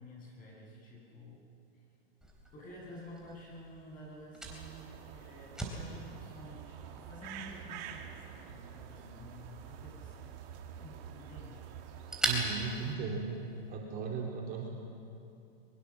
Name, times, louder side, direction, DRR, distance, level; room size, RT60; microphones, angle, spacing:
voice 1, 0.0-1.4 2.5-10.4 10.8-11.6, left 1 dB, 25° left, -2 dB, 7.9 m, -50 dB
Fire, 2.2-13.7, right 2 dB, ahead, 3.9 m, -43 dB
sound 1, 4.4-13.0, right 9 dB, 45° right, 2.2 m, -48 dB
voice 2, 12.2-13.4 13.7-14.7, right 5 dB, 30° right, -1 dB, 3.1 m, -36 dB
22.5 x 22.0 x 7.4 m, 2.6 s
hypercardioid pair, 135°, 31 cm